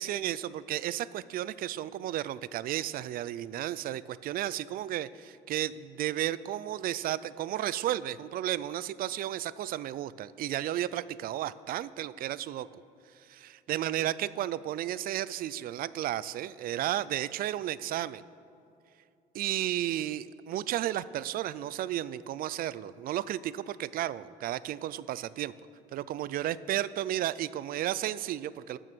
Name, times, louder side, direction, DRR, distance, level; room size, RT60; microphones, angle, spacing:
voice 1, 0.0-12.7 13.2-18.2 19.3-25.5 25.9-28.8, right 12 dB, 60° right, 18 dB, 0.4 m, -33 dB
13.5 x 6.3 x 6.1 m, 2.5 s
cardioid pair, 110°, 17 cm